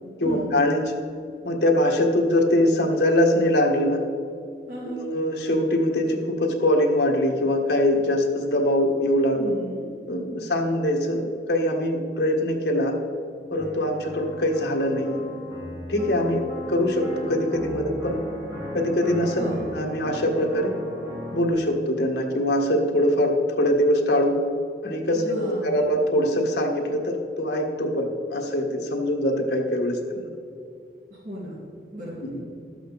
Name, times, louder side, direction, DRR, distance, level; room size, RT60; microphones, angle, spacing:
voice 1, 0.2-0.8 1.4-4.0 4.8-9.5 10.1-13.0 13.5-15.2 15.9-18.3 18.7-20.8 21.3-24.4 24.8-30.3 32.2-32.4, left 1 dB, 75° left, 1 dB, 1.6 m, -23 dB
voice 2, 4.7-5.0 9.3-9.8 19.4-19.7 25.1-25.9 31.1-31.5 31.9-32.4, equal, 50° right, -7 dB, 2.5 m, -35 dB
sound 1, 13.5-21.5, equal, 20° right, 2.5 m, -36 dB
13.0 x 8.1 x 4.1 m, 2.5 s
head